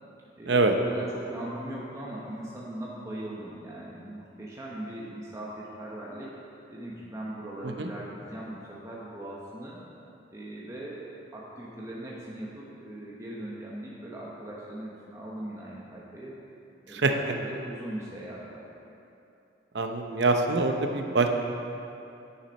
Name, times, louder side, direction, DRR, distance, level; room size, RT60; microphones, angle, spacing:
voice 1, 0.4-6.3 6.7-9.8 10.3-16.4 16.9-18.6, right 1 dB, 15° right, -6 dB, 1.0 m, -40 dB
voice 2, 19.7-21.3, right 3 dB, 65° right, 5 dB, 0.8 m, -24 dB
9.6 x 7.3 x 5.3 m, 2.7 s
head